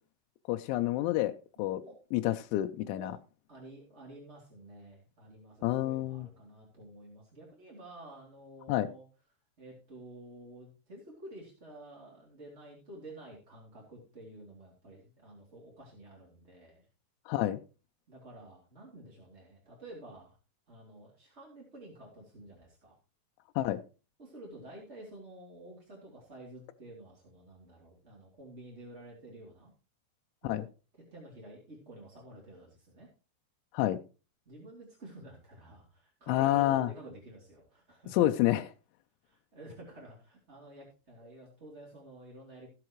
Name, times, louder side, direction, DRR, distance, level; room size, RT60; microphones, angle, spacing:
voice 1, 0.5-1.3 1.6-1.8 2.1-3.1 5.6-6.3 8.7-8.9 17.3-17.6 23.6-23.8 30.4-30.6 33.7-34.0 36.3-36.9 38.1-38.7, left 14 dB, 80° left, 7 dB, 2.9 m, -28 dB
voice 2, 1.6-1.9 2.8-3.1 3.5-9.0 9.6-16.9 18.1-20.4 20.7-22.9 24.2-29.7 30.4-30.6 31.1-33.1 34.5-38.2 39.2-42.7, right 1 dB, 20° right, -3 dB, 2.1 m, -50 dB
17.5 x 7.9 x 3.1 m, 0.33 s
omnidirectional pair, 5.6 m